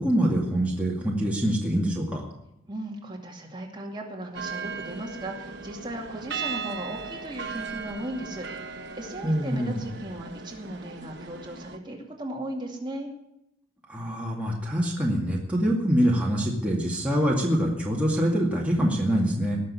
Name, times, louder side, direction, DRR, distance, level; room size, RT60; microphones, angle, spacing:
voice 1, 0.0-2.2 9.2-9.8 13.9-19.6, equal, 5° right, -3 dB, 2.2 m, -25 dB
voice 2, 2.7-13.1, right 1 dB, 20° right, 0 dB, 2.4 m, -37 dB
sound 1, 4.3-11.8, right 5 dB, 55° right, 1.1 m, -37 dB
19.0 x 6.6 x 9.9 m, 0.83 s
head